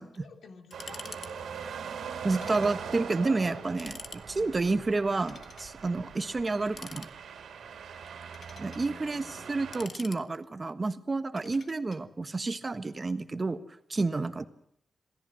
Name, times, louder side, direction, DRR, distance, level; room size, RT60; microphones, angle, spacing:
voice 1, 0.0-1.5 4.3-4.6 5.8-6.1 8.5-9.4, left 4 dB, 75° left, 5 dB, 3.2 m, -53 dB
sound 1, 0.7-1.3 1.6-1.7 2.3-2.8 3.1-3.2 3.6-4.2 5.2-5.7 6.6-7.5 8.1-8.8 9.5-10.6 11.4-12.0, left 5 dB, 50° left, 1.4 m, -47 dB
sound 2, 0.7-9.9, right 6 dB, 90° right, 3.4 m, -41 dB
voice 2, 2.2-7.1 8.6-13.6 13.9-14.5, right 3 dB, 30° right, 10 dB, 1.3 m, -30 dB
27.0 x 17.5 x 7.7 m, 0.72 s
wide cardioid pair, 120°, 0 cm